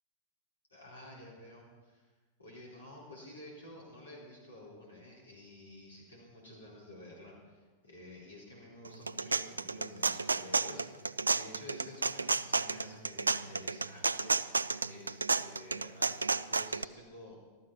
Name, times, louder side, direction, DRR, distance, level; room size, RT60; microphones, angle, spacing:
voice 1, 0.7-2.0 2.4-17.4, left 1 dB, 75° left, -4 dB, 3.9 m, -51 dB
sound 1, 8.8-16.8, right 4 dB, 80° right, 0.3 m, -31 dB
13.5 x 13.5 x 5.7 m, 1.3 s
figure-of-eight pair, 90°, 0 cm